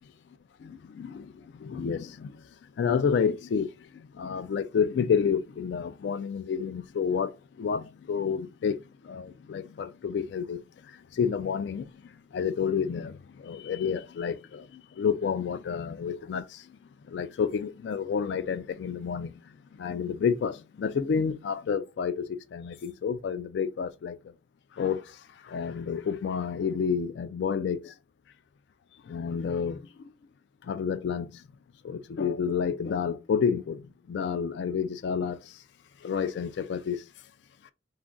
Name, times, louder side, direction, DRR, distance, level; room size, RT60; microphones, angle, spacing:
voice 1, 0.6-2.4 2.8-16.7 17.1-19.3 19.8-24.2 24.8-25.2 25.4-27.9 29.1-30.1 30.6-31.3 31.8-35.6 36.0-37.0, left 6 dB, 75° left, 0.3 m, -30 dB
2.4 x 2.2 x 3.6 m
head